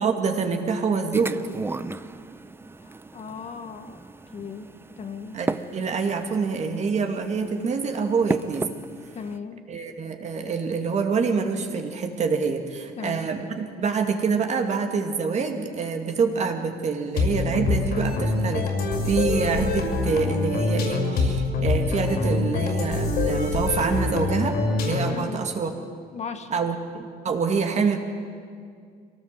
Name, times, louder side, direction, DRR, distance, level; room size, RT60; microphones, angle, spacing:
voice 1, 0.0-1.4 5.3-8.7 9.7-18.6 19.0-24.6 24.8-25.7 26.5-28.0, right 5 dB, 40° right, 4 dB, 2.3 m, -26 dB
sound 1, 1.1-9.4, right 3 dB, 15° right, 0.6 m, -35 dB
voice 2, 2.8-4.0 4.3-5.4 9.1-9.7 13.0-13.3 25.1-25.4 26.1-26.7, left 6 dB, 40° left, 8 dB, 1.3 m, -37 dB
sound 2, 17.2-25.3, left 3 dB, 70° left, 5.8 m, -25 dB
23.0 x 18.0 x 7.7 m, 2.1 s
cardioid pair, 110°, 17 cm